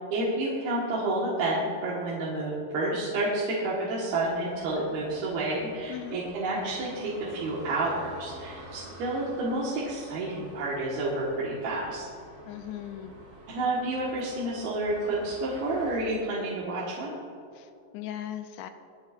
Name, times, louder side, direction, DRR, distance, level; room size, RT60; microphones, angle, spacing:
voice 1, 0.1-12.0 13.5-17.2, right 2 dB, 65° right, -6 dB, 3.3 m, -30 dB
sound 1, 4.1-16.0, right 1 dB, 35° right, 1.3 m, -48 dB
voice 2, 12.5-13.2 17.5-18.7, left 11 dB, 85° left, 8 dB, 2.6 m, -38 dB
25.0 x 10.5 x 2.6 m, 2.5 s
omnidirectional pair, 5.1 m